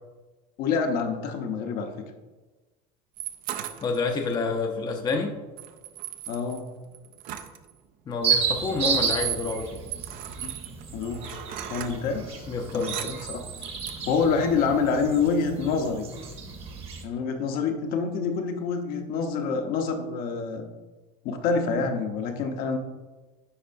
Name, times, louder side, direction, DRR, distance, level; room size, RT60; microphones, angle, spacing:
voice 1, 0.6-1.9 6.3-6.7 10.4-10.5 10.9-11.2 11.7-12.5 12.7-13.4 14.1-16.1 17.0-20.7 21.2-22.8, left 5 dB, 55° left, 4 dB, 0.9 m, -27 dB
sound 1, 3.2-4.3 5.6-7.7 8.6-11.9 12.5-14.1, right 12 dB, 50° right, 0.6 m, -37 dB
voice 2, 3.8-5.3 8.1-9.7 12.5-12.9, left 4 dB, 25° left, 2 dB, 0.6 m, -28 dB
sound 2, 8.2-17.0, right 6 dB, 30° right, 1.1 m, -32 dB
10.0 x 4.3 x 2.6 m, 1.2 s
supercardioid pair, 125°, 18 cm